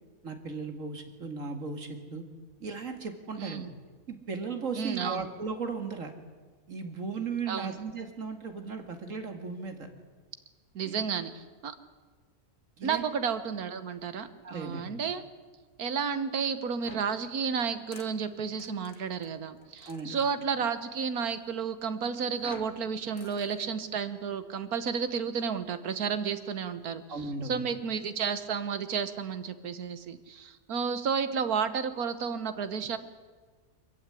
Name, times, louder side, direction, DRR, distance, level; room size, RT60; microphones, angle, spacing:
voice 1, 0.2-2.2 2.6-3.7 4.1-6.1 6.7-9.9 10.8-11.0 12.8-13.0 14.4-14.8 19.9-20.2 27.1-27.6, right 4 dB, 60° right, 6 dB, 2.5 m, -36 dB
voice 2, 3.4-3.7 4.7-5.3 7.5-7.7 10.7-11.3 11.6-11.7 12.8-15.2 15.8-27.0 27.5-33.0, right 6 dB, 90° right, 11 dB, 1.7 m, -32 dB
sound 1, 16.8-20.4 22.4-23.6, left 4 dB, 90° left, 2.2 m, -52 dB
23.5 x 14.5 x 9.9 m, 1.4 s
omnidirectional pair, 1.5 m